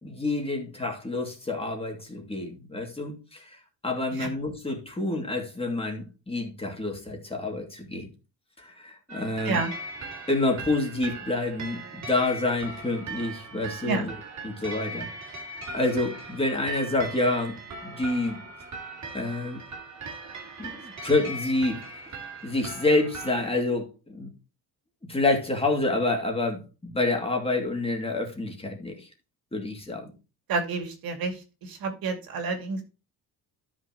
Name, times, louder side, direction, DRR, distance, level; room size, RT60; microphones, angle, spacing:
voice 1, 0.0-3.6 3.8-8.1 8.6-9.6 10.3-14.1 14.4-15.1 15.4-17.6 17.8-18.4 19.1-19.6 20.6-21.8 22.4-24.3 25.1-29.1 29.5-30.1, left 2 dB, 15° left, 1 dB, 2.4 m, -28 dB
sound 1, 9.1-23.5, right 2 dB, 45° right, 2.4 m, -39 dB
voice 2, 30.5-32.8, right 4 dB, 65° right, 3 dB, 2.5 m, -29 dB
12.5 x 6.2 x 3.0 m, 0.30 s
cardioid pair, 140°, 38 cm